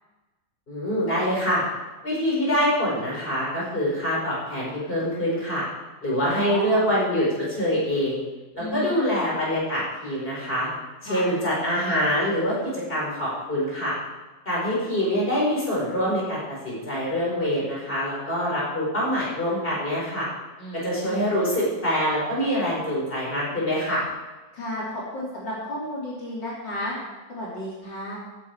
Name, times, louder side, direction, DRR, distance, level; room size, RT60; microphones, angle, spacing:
voice 1, 0.7-1.7 2.0-5.6 6.0-8.2 8.5-10.7 11.0-14.0 14.5-20.3 20.8-24.0, equal, 30° left, -5 dB, 5.2 m, -25 dB
voice 2, 6.2-6.9 8.6-9.0 11.0-11.3 20.6-21.3 24.5-26.9 27.3-28.2, equal, 70° left, -6 dB, 3.9 m, -33 dB
15.0 x 10.0 x 4.8 m, 1.2 s
omnidirectional pair, 2.0 m